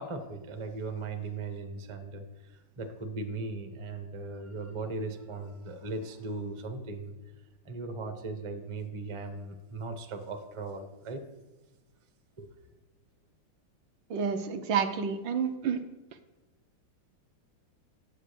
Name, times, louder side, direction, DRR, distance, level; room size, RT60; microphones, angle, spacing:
voice 1, 0.0-7.1 7.6-11.2 12.4-12.5, right 3 dB, 35° right, 6 dB, 0.4 m, -38 dB
voice 2, 14.1-15.8, right 6 dB, 70° right, 8 dB, 1.3 m, -29 dB
8.6 x 8.4 x 6.8 m, 1.1 s
omnidirectional pair, 2.3 m